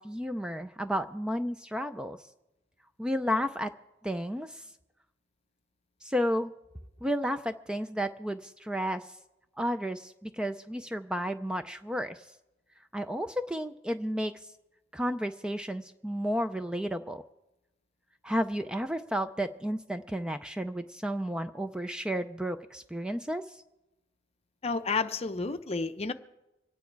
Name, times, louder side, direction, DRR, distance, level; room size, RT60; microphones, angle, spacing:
voice 1, 0.0-2.2 3.0-3.7 4.0-4.6 6.0-6.5 7.0-9.1 9.6-12.2 12.9-14.3 14.9-17.2 18.2-23.4, equal, 5° right, 0.4 m, -32 dB
voice 2, 24.6-26.1, left 4 dB, 35° left, 0.7 m, -31 dB
25.5 x 9.4 x 4.6 m
head